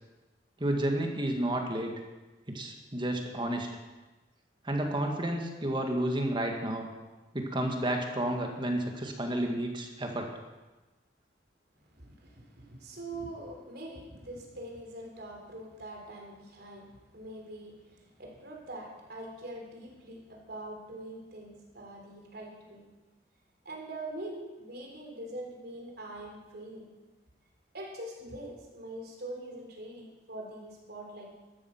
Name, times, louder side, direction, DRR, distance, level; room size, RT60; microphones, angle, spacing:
voice 1, 0.6-1.9 2.5-3.7 4.6-6.9 7.3-10.3, right 1 dB, 25° right, 3 dB, 1.9 m, -31 dB
voice 2, 11.8-22.9 23.7-26.9 27.7-31.4, right 1 dB, 60° right, 0 dB, 3.7 m, -43 dB
13.5 x 12.5 x 5.9 m, 1.2 s
head